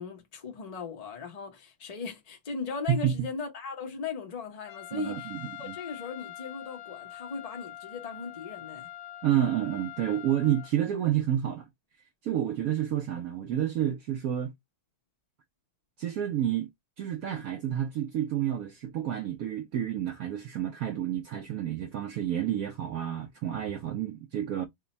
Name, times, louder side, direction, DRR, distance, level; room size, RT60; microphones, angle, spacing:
voice 1, 0.0-5.3 5.6-8.9, left 5 dB, 90° left, 0.3 m, -38 dB
Trumpet, 4.7-10.7, left 13 dB, 75° left, 1.2 m, -44 dB
voice 2, 4.9-5.4 5.7-5.8 9.2-11.7 12.2-14.5 16.0-16.7 17.0-24.6, right 11 dB, 90° right, 0.7 m, -29 dB
3.4 x 2.2 x 4.0 m
omnidirectional pair, 2.1 m